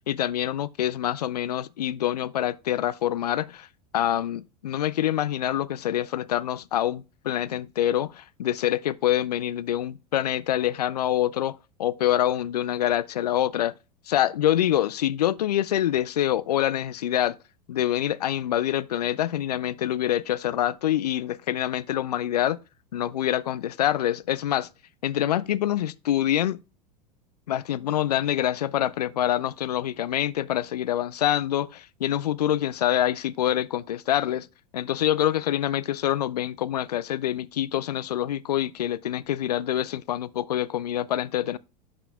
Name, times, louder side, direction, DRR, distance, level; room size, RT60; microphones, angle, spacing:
voice 1, 0.0-3.7 3.9-13.7 14.1-17.4 17.7-22.6 22.9-24.7 25.0-26.6 27.5-34.5 34.7-41.6, left 12 dB, 70° left, 0.4 m, -26 dB
11.0 x 5.0 x 2.3 m
figure-of-eight pair, 80°, 21 cm